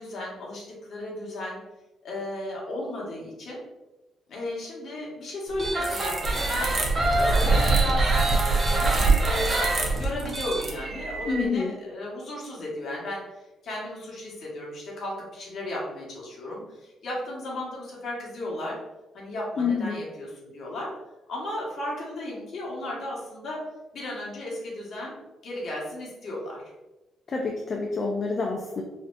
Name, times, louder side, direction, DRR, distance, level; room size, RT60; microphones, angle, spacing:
voice 1, 0.0-1.6 2.0-3.6 4.3-6.7 7.1-18.8 19.1-20.9 21.3-23.6 23.9-25.2 25.4-26.6, left 1 dB, 65° left, -4 dB, 1.4 m, -35 dB
sound 1, 5.5-11.5, right 3 dB, 35° right, 0.8 m, -23 dB
voice 2, 11.3-11.7 19.6-20.0 27.3-28.8, left 4 dB, 45° left, 0 dB, 0.5 m, -27 dB
4.2 x 2.7 x 2.6 m, 1.0 s
cardioid pair, 90°, 0 cm